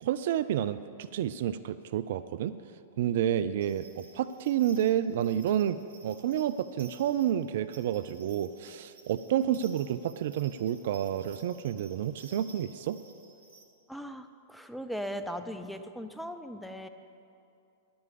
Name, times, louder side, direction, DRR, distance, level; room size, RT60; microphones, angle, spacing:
voice 1, 0.0-2.5 3.0-13.0, right 10 dB, 55° right, 13 dB, 0.3 m, -30 dB
sound 1, 3.6-13.6, right 3 dB, 70° right, 1.3 m, -55 dB
voice 2, 13.9-16.9, equal, ahead, 7 dB, 0.6 m, -38 dB
10.5 x 7.7 x 8.4 m, 2.6 s
figure-of-eight pair, 100°, 0 cm